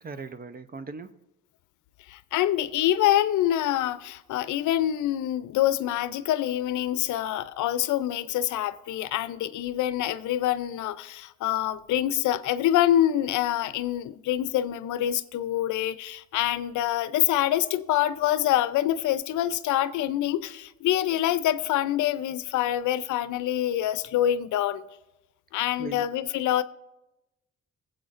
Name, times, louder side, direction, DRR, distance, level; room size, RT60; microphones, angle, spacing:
voice 1, 0.0-1.2 25.8-26.2, right 4 dB, 30° right, 0.6 m, -39 dB
voice 2, 2.1-24.8 25.5-26.6, left 12 dB, 80° left, 0.5 m, -26 dB
20.0 x 7.8 x 2.5 m
cardioid pair, 90°, 30 cm